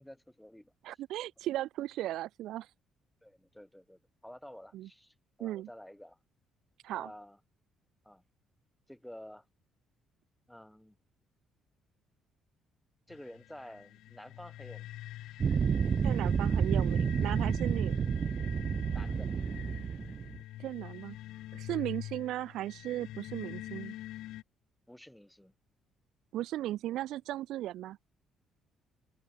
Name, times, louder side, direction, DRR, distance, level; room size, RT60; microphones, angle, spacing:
voice 1, 0.0-1.0 3.2-6.2 6.9-7.4 8.0-8.2 8.9-9.4 10.5-11.0 13.1-14.9 18.9-19.3 24.9-25.5, left 1 dB, ahead, 5.0 m, -51 dB
voice 2, 0.8-2.7 4.7-4.9 5.4-5.7 6.8-7.1 16.0-18.0 20.6-21.2 21.5-23.9 26.3-28.0, right 14 dB, 65° right, 2.4 m, -36 dB
sound 1, 13.1-24.4, left 15 dB, 75° left, 1.0 m, -46 dB
sound 2, 15.4-20.4, right 6 dB, 30° right, 0.3 m, -30 dB
cardioid pair, 175°, 0 cm